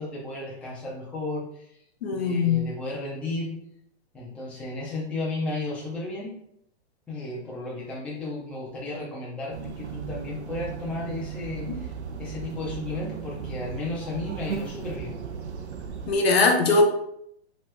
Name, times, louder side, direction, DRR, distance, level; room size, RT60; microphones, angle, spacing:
voice 1, 0.0-1.8 2.1-3.6 4.1-6.3 7.1-11.9 12.2-15.2, left 2 dB, 5° left, -7 dB, 0.5 m, -34 dB
voice 2, 2.0-2.6 11.7-11.8 16.1-16.9, left 3 dB, 65° left, 2 dB, 0.9 m, -21 dB
sound 1, 9.5-16.2, right 6 dB, 90° right, 0.6 m, -36 dB
3.1 x 3.0 x 3.3 m, 0.74 s
hypercardioid pair, 140°, 33 cm